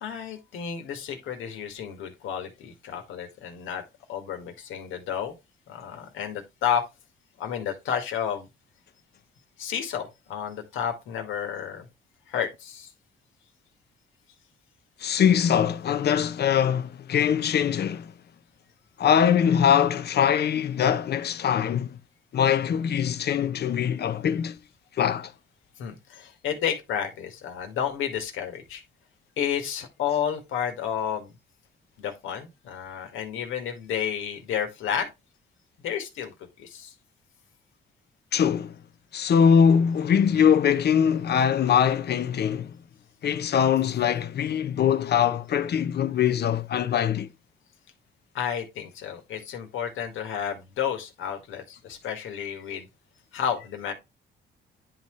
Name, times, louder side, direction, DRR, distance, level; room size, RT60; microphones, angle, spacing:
voice 1, 0.0-3.8 4.1-5.3 5.7-6.9 7.4-8.5 9.6-11.9 12.3-12.9 25.8-28.8 29.4-31.3 32.0-35.1 35.8-36.9 48.3-52.9 53.3-53.9, left 8 dB, 85° left, 1.8 m, -31 dB
voice 2, 15.0-18.1 19.0-22.0 22.3-24.6 25.0-25.3 38.3-38.7 39.1-42.8 43.2-47.3, left 8 dB, 55° left, 0.8 m, -22 dB
10.0 x 4.1 x 3.2 m
cardioid pair, 90°, 20 cm